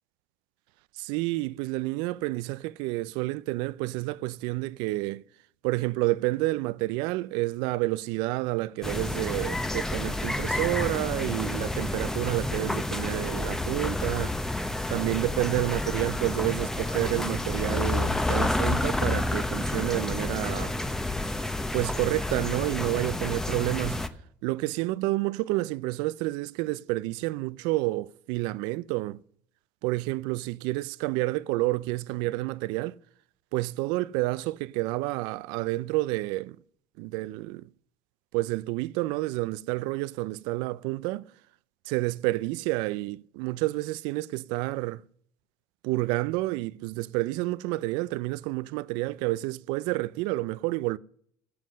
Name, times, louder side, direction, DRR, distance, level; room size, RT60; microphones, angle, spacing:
voice 1, 1.0-5.2 5.6-14.4 14.9-20.8 21.7-24.1 24.4-29.2 29.8-33.0 33.5-36.6 37.0-37.7 38.3-41.3 41.9-45.0 45.8-51.0, right 20 dB, 70° right, 0.4 m, -29 dB
sound 1, 8.8-24.1, left 2 dB, 5° left, 0.9 m, -29 dB
17.5 x 7.4 x 6.4 m
supercardioid pair, 110°, 8 cm